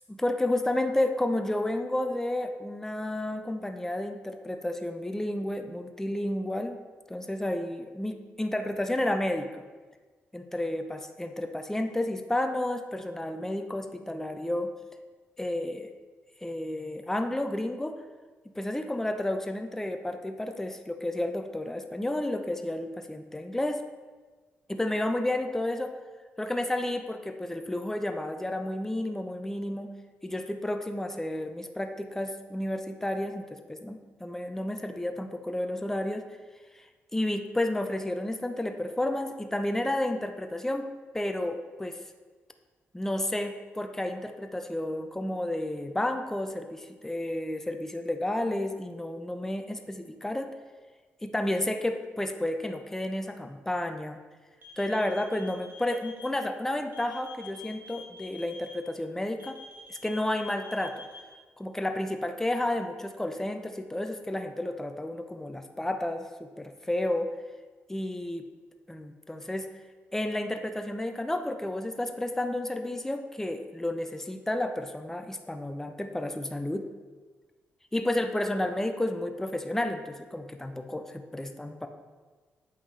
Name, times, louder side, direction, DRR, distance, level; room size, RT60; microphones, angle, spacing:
voice 1, 0.1-6.8 7.1-9.6 10.3-14.7 15.4-15.9 16.4-17.9 18.5-23.8 24.7-25.9 26.4-29.9 30.2-36.2 36.7-40.9 41.1-42.0 42.9-50.5 51.2-54.2 54.8-59.6 59.9-61.1 61.6-67.3 67.9-68.4 68.9-69.7 70.1-76.9 77.9-81.9, left 1 dB, 10° left, 6 dB, 0.6 m, -31 dB
sound 1, 54.6-56.2 56.9-58.7 59.4-61.2, left 4 dB, 50° right, 1.9 m, -47 dB
8.0 x 5.6 x 3.2 m, 1.4 s
cardioid pair, 70°, 5 cm